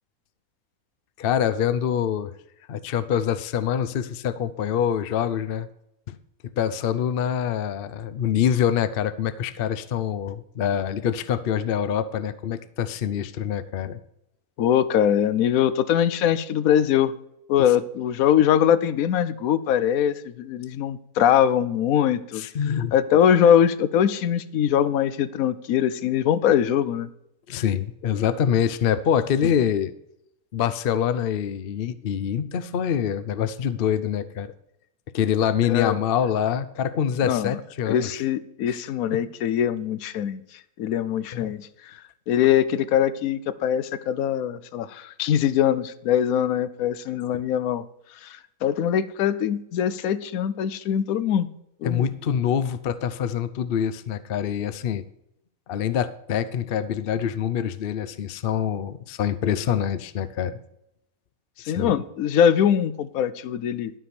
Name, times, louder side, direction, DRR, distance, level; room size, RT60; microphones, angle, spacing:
voice 1, 1.2-2.3 2.7-5.7 6.1-6.2 6.4-14.0 22.3-22.9 27.5-29.9 30.5-34.5 35.1-38.2 38.7-38.8 39.1-39.2 41.3-41.5 51.8-55.0 55.7-60.6 61.6-62.0, left 9 dB, 55° left, 14 dB, 0.6 m, -25 dB
voice 2, 14.6-17.1 17.5-22.4 22.9-27.1 35.7-36.0 37.2-37.6 37.9-40.4 40.8-42.0 42.3-47.8 48.2-51.5 51.8-52.1 61.6-63.9, left 9 dB, 75° left, 14 dB, 1.1 m, -22 dB
12.5 x 4.8 x 6.9 m, 0.79 s
omnidirectional pair, 1.5 m